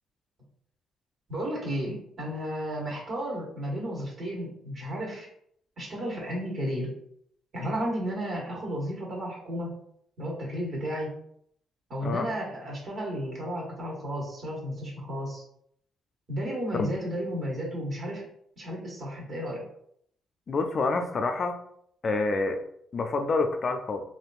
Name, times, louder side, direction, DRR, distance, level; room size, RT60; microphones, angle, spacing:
voice 1, 1.3-5.3 5.8-6.9 7.5-9.8 10.2-11.1 11.9-15.4 16.3-18.3 18.6-19.6, equal, 55° right, -3 dB, 1.5 m, -33 dB
voice 2, 20.5-21.6 22.0-22.6 22.9-24.0, left 3 dB, 45° left, 5 dB, 0.4 m, -27 dB
3.4 x 2.6 x 2.4 m, 0.69 s
supercardioid pair, 70°, 0 cm